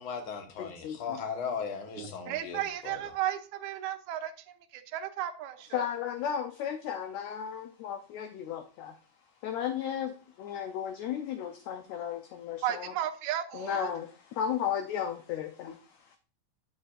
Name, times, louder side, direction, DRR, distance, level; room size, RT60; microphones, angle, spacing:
voice 1, 0.0-3.0, left 6 dB, 55° left, 1.5 m, -37 dB
voice 2, 0.6-1.2 5.7-9.0 9.4-12.9 13.5-16.2, left 9 dB, 80° left, 1.6 m, -35 dB
voice 3, 2.0-5.8 12.6-13.9, right 11 dB, 70° right, 2.0 m, -34 dB
8.9 x 7.7 x 2.4 m
omnidirectional pair, 3.8 m